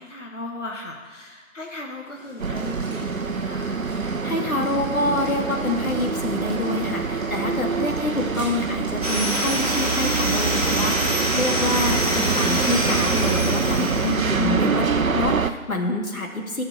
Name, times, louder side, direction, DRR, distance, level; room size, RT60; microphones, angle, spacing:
voice 1, 0.0-3.8 14.3-15.0, left 1 dB, 60° left, 0 dB, 1.7 m, -35 dB
sound 1, 2.1-13.8, equal, ahead, 2.8 m, -43 dB
sound 2, 2.4-15.5, right 5 dB, 75° right, 0.8 m, -25 dB
voice 2, 3.9-16.6, left 2 dB, 85° left, 1 dB, 2.4 m, -27 dB
sound 3, 9.0-14.7, right 1 dB, 25° right, 1.6 m, -26 dB
20.5 x 6.8 x 4.3 m, 1.4 s
figure-of-eight pair, 180°, 41 cm